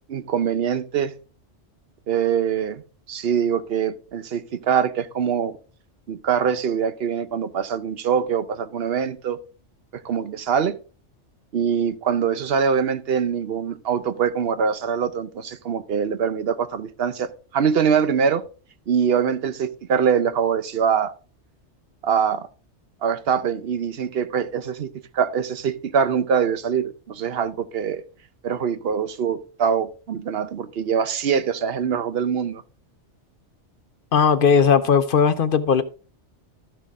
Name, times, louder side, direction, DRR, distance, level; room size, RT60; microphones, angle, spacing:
voice 1, 0.1-1.1 2.1-2.8 3.1-5.5 6.1-9.4 9.9-10.8 11.5-18.4 18.9-21.1 22.0-22.5 23.0-28.0 28.4-32.6, right 7 dB, 60° right, 0.9 m, -23 dB
voice 2, 34.1-35.8, left 6 dB, 55° left, 0.8 m, -17 dB
13.0 x 6.2 x 3.6 m
omnidirectional pair, 1.2 m